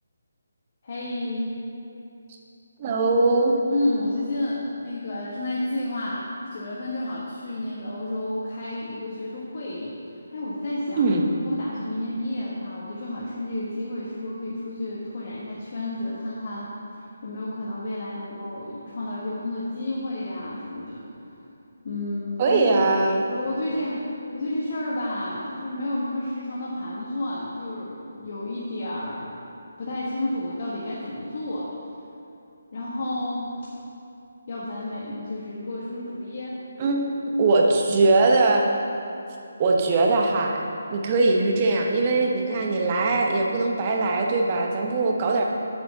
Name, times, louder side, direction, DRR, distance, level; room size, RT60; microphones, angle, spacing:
voice 1, 0.8-1.6 3.7-6.3 6.5-10.0 10.3-11.1 11.4-16.7 17.2-21.0 21.8-22.8 23.3-24.0 24.3-29.4 29.8-31.7 32.7-33.5 34.5-36.6, left 1 dB, 50° left, -7 dB, 1.5 m, -31 dB
voice 2, 2.8-3.6 11.0-11.3 22.4-23.2 36.8-38.7 39.6-45.4, right 3 dB, 30° right, 0 dB, 1.0 m, -21 dB
8.4 x 5.1 x 7.2 m, 2.7 s
figure-of-eight pair, 155°, 0 cm